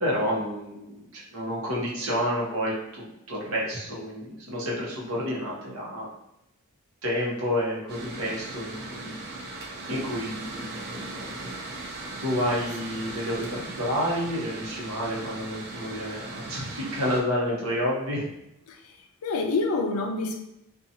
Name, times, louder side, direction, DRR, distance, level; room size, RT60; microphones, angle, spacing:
voice 1, 0.0-6.1 7.0-9.2 9.9-11.4 12.2-18.3, equal, 65° right, -4 dB, 0.9 m, -29 dB
Mechanical fan, 7.9-17.2, right 2 dB, 50° right, 0.6 m, -38 dB
voice 2, 19.2-20.4, left 3 dB, 75° left, 4 dB, 0.4 m, -27 dB
2.7 x 2.3 x 2.6 m, 0.85 s
head